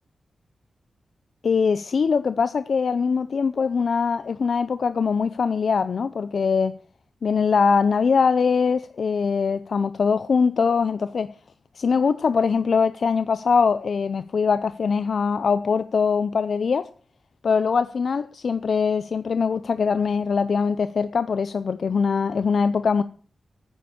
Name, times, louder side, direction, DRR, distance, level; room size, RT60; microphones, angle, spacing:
voice 1, 1.4-6.8 7.2-11.3 11.8-16.9 17.4-23.0, left 5 dB, 60° left, 0.5 m, -22 dB
9.6 x 9.5 x 7.2 m
wide cardioid pair, 130°, 0 cm